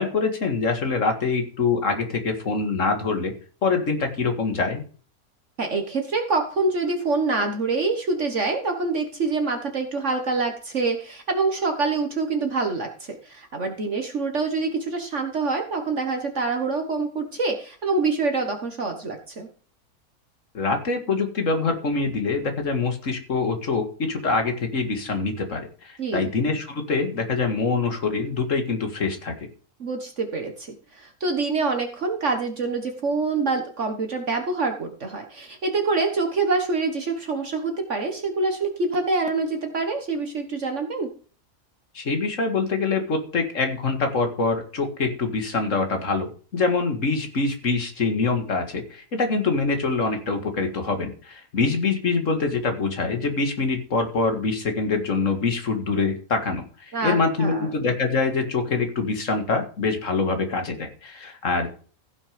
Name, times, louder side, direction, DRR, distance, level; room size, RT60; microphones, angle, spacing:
voice 1, 0.0-3.3 3.6-4.8 20.5-29.5 41.9-61.7, left 4 dB, 60° left, 6 dB, 2.2 m, -25 dB
voice 2, 5.6-19.5 26.0-26.3 29.8-41.1 56.9-57.7, right 3 dB, 55° right, 5 dB, 1.7 m, -26 dB
15.0 x 6.3 x 5.2 m, 0.40 s
omnidirectional pair, 1.5 m